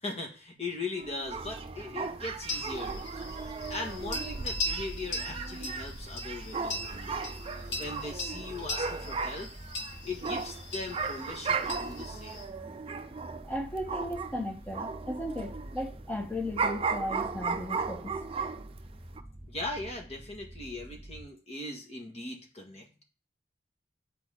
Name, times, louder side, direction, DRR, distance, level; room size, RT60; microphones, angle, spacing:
voice 1, 0.0-3.0 3.7-7.2 7.7-9.5 10.0-12.4 19.5-23.0, left 2 dB, 40° left, 1.7 m, -39 dB
sound 1, 1.0-14.4 14.7-18.8 19.2-19.3, right 5 dB, 35° right, 0.5 m, -36 dB
sound 2, 1.3-21.2, right 1 dB, 5° right, 2.4 m, -47 dB
sound 3, 2.4-12.4, left 1 dB, 80° left, 2.0 m, -39 dB
voice 2, 13.5-18.2, equal, 10° left, 1.1 m, -36 dB
9.1 x 5.0 x 3.7 m
head